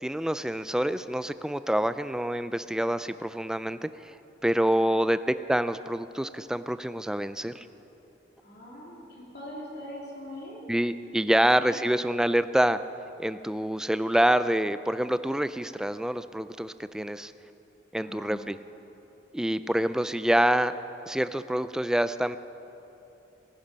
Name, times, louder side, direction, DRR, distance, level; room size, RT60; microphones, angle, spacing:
voice 1, 0.0-3.9 4.4-7.7 10.7-12.8 13.2-17.3 17.9-18.6 19.3-20.7 21.1-22.4, right 1 dB, 5° right, 12 dB, 0.3 m, -26 dB
voice 2, 8.4-10.6 11.6-12.2 17.9-18.3, left 1 dB, 65° left, -5 dB, 3.6 m, -43 dB
19.0 x 11.5 x 5.2 m, 3.0 s
head